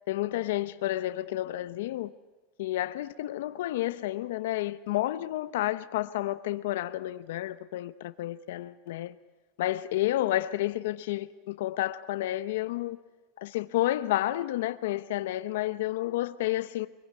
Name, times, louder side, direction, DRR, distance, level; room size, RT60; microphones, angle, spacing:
voice 1, 0.1-2.1 2.6-9.2 9.6-13.0 13.4-16.9, left 15 dB, 80° left, 0.8 m, -30 dB
23.5 x 22.0 x 9.3 m
supercardioid pair, 150°, 0 cm